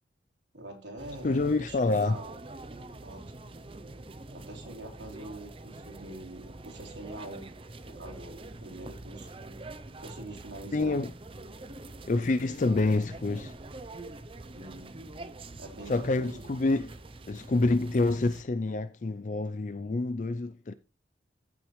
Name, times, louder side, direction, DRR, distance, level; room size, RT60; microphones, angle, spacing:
voice 1, 0.5-2.4 3.0-3.4 4.3-7.5 7.9-9.3 10.0-11.0 14.5-15.0 15.6-16.4, right 2 dB, 75° right, 3.6 m, -44 dB
sound 1, 1.0-18.4, right 2 dB, 30° right, 0.6 m, -45 dB
voice 2, 1.2-2.2 10.7-11.1 12.1-13.5 15.9-16.9 17.3-20.7, left 2 dB, 40° left, 0.4 m, -27 dB
14.5 x 6.2 x 3.2 m
head